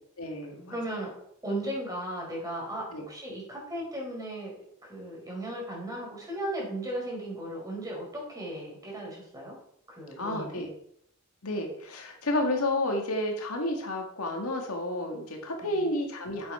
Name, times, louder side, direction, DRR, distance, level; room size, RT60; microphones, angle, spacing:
voice 1, 0.2-0.8 2.9-3.1 10.2-10.7 11.4-16.5, left 1 dB, 85° left, 2 dB, 2.0 m, -31 dB
voice 2, 0.7-1.1 1.4-9.6 9.9-10.6 15.6-15.9, right 1 dB, 15° right, -2 dB, 4.3 m, -36 dB
8.4 x 8.4 x 4.4 m, 0.68 s
head